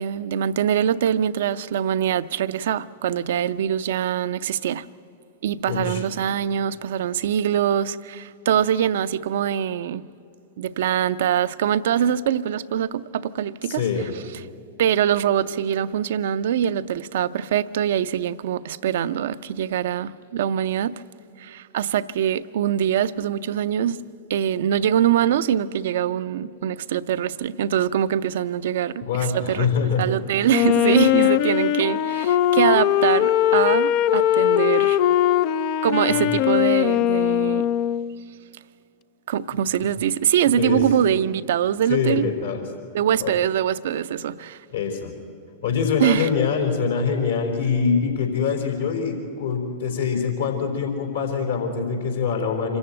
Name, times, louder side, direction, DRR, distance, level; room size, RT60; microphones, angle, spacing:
voice 1, 0.0-4.9 5.4-10.1 10.6-13.8 14.8-21.0 21.4-24.0 24.3-35.0 35.8-37.7 39.3-42.3 42.9-44.6 46.0-46.3, right 9 dB, 65° right, 0.6 m, -23 dB
voice 2, 5.7-6.0 13.6-14.1 29.0-30.2 36.1-36.2 39.8-39.9 40.5-40.8 41.9-42.6 43.2-43.3 44.7-45.1 45.6-52.8, left 5 dB, 75° left, 4.0 m, -24 dB
Wind instrument woodwind instrument, 30.5-38.2, left 11 dB, 50° left, 0.5 m, -20 dB
26.0 x 14.5 x 8.9 m
figure-of-eight pair, 100°, 0 cm